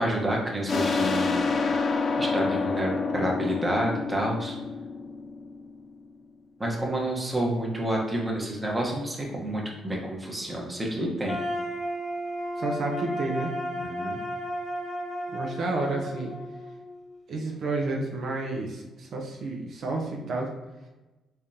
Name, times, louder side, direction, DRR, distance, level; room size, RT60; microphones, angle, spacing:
voice 1, 0.0-1.5 2.2-4.6 6.6-11.4 13.8-14.2, right 1 dB, 15° right, -2 dB, 0.9 m, -29 dB
sound 1, 0.7-6.0, left 4 dB, 50° left, 0.4 m, -28 dB
sound 2, 11.3-17.2, equal, 25° left, 1.0 m, -33 dB
voice 2, 12.6-13.5 15.3-16.3 17.3-20.5, right 2 dB, 65° right, 0 dB, 0.6 m, -30 dB
3.5 x 3.3 x 2.7 m, 1.1 s
cardioid pair, 90°, 0 cm